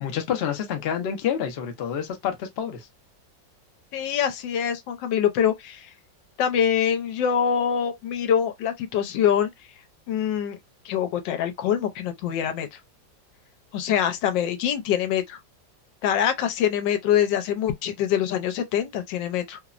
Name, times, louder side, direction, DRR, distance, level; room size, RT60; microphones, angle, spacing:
voice 1, 0.0-2.9, left 8 dB, 65° left, 0.6 m, -28 dB
voice 2, 3.9-5.9 6.4-9.5 10.1-10.6 10.8-12.8 13.7-15.4 16.0-19.6, left 9 dB, 90° left, 1.3 m, -24 dB
3.1 x 2.0 x 2.4 m
omnidirectional pair, 1.9 m